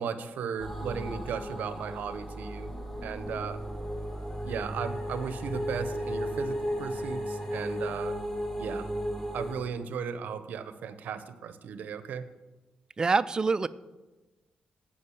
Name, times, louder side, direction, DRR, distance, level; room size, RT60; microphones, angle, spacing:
voice 1, 0.0-2.7 3.0-3.6 4.4-8.2 8.6-8.9 9.3-12.2, right 7 dB, 85° right, 11 dB, 0.7 m, -36 dB
sound 1, 0.6-9.5, equal, 15° left, 1.2 m, -35 dB
Musical instrument, 2.7-7.9, left 1 dB, 85° left, 2.0 m, -51 dB
voice 2, 13.0-13.7, right 4 dB, 25° right, 15 dB, 0.3 m, -25 dB
9.7 x 5.2 x 7.1 m, 1.1 s
cardioid pair, 120°, 3 cm